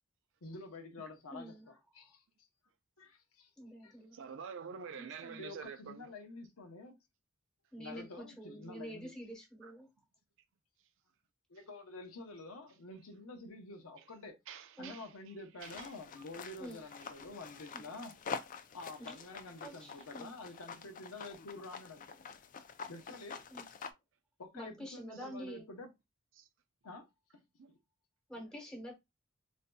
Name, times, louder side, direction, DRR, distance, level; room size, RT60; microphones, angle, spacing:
voice 1, 0.4-2.2 3.0-3.5 3.8-4.0 5.4-7.0 7.8-9.1 11.5-14.4 14.8-18.2 18.7-22.2 22.9-23.4 24.4-25.9 26.8-27.0 27.3-27.4 28.4-28.5, left 2 dB, 80° left, 0.8 m, -49 dB
voice 2, 1.3-1.7 3.6-4.2 4.9-5.4 7.7-9.9 14.8-14.9 16.6-16.8 17.7-17.9 19.0-19.2 19.6-20.3 23.5-23.6 24.5-25.7 28.3-28.9, equal, 5° left, 1.2 m, -47 dB
voice 3, 4.1-6.1 9.6-9.7 14.5-15.1 15.6-15.9 25.2-25.3 26.4-26.5 27.6-27.7, right 6 dB, 60° right, 0.4 m, -47 dB
sound 1, 15.6-23.9, left 6 dB, 40° left, 0.3 m, -47 dB
4.0 x 2.6 x 2.2 m
head